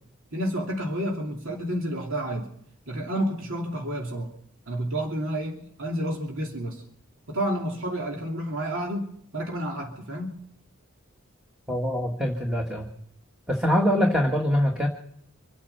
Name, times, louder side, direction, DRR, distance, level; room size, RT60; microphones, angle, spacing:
voice 1, 0.3-2.5 2.9-4.3 4.7-6.8 7.3-10.4, right 1 dB, 60° right, 0 dB, 2.8 m, -30 dB
voice 2, 11.7-12.9 13.5-14.9, equal, 5° right, 1 dB, 1.6 m, -23 dB
26.0 x 8.8 x 5.8 m, 0.68 s
head